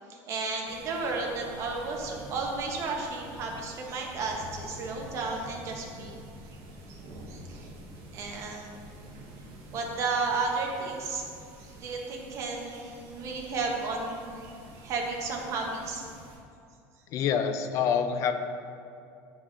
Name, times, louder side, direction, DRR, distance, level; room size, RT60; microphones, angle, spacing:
voice 1, 0.1-6.2 6.9-7.0 7.3-7.7 8.1-8.7 9.7-11.2 11.6-16.0, right 3 dB, 40° right, 0 dB, 0.9 m, -33 dB
sound 1, 0.6-16.4, right 1 dB, 65° right, 1.2 m, -48 dB
voice 2, 17.1-18.3, left 7 dB, 40° left, 8 dB, 0.4 m, -26 dB
8.2 x 5.3 x 2.5 m, 2.5 s
cardioid pair, 165°, 8 cm